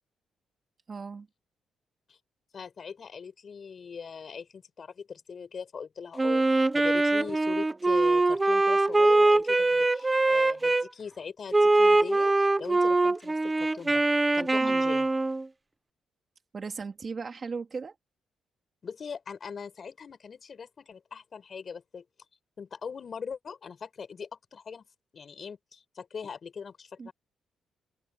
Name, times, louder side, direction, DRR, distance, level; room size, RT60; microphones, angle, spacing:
voice 1, 0.9-1.3 14.6-14.8 16.5-17.9 27.0-27.1, right 5 dB, 30° right, 2.8 m, -37 dB
voice 2, 2.5-14.0 14.3-15.1 18.8-22.0 22.6-24.9 25.1-27.1, left 6 dB, 35° left, 6.6 m, -41 dB
Wind instrument woodwind instrument, 6.2-10.9 11.5-15.5, right 2 dB, 15° right, 0.7 m, -23 dB
cardioid pair, 170°, 0 cm